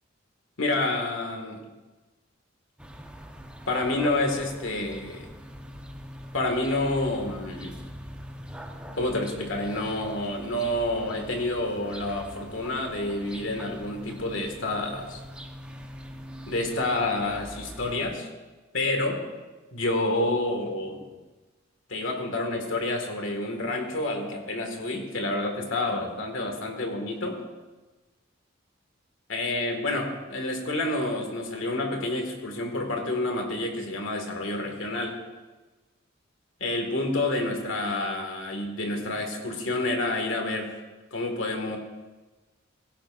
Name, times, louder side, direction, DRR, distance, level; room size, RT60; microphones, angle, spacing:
voice 1, 0.6-1.6 3.7-5.2 6.3-7.8 8.9-15.2 16.5-18.3 18.7-19.2 19.7-21.0 21.9-27.4 29.3-35.2 36.6-40.7 41.1-41.8, left 2 dB, 85° left, 3 dB, 2.0 m, -28 dB
sound 1, 2.8-18.0, equal, 5° right, 1.0 m, -43 dB
16.5 x 16.0 x 2.6 m, 1.2 s
head